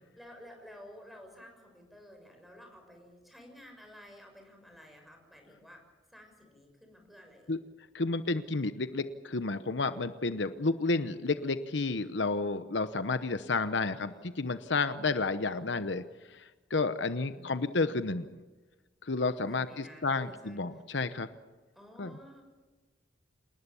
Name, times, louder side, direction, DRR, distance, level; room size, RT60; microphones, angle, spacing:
voice 1, 0.1-5.8 6.1-7.5 13.0-14.3 15.1-15.9 17.2-17.9 19.4-20.8 21.7-22.4, left 1 dB, ahead, 3 dB, 6.6 m, -53 dB
voice 2, 7.9-16.0 16.3-18.3 19.0-21.3 22.0-22.2, left 3 dB, 70° left, 11 dB, 1.0 m, -31 dB
28.0 x 19.5 x 7.1 m, 1.2 s
head